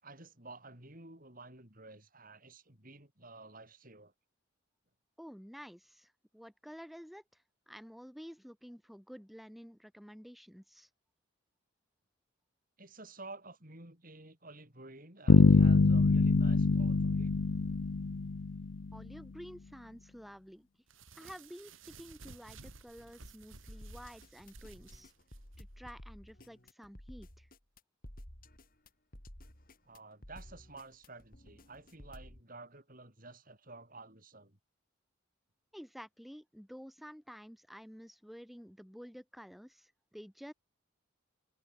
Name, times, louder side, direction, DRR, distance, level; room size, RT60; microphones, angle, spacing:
voice 1, 0.0-4.1 12.8-17.3 29.8-34.6, right 2 dB, 45° right, 6.8 m, -52 dB
voice 2, 5.2-7.2 7.7-10.9 18.9-20.7 21.2-25.1 25.6-27.5 35.7-40.5, equal, ahead, 6.8 m, -51 dB
sound 1, 15.3-19.0, left 3 dB, 70° left, 0.7 m, -25 dB
sound 2, 20.9-25.6, right 3 dB, 75° right, 3.2 m, -54 dB
sound 3, 23.7-32.4, equal, 45° left, 5.3 m, -52 dB
head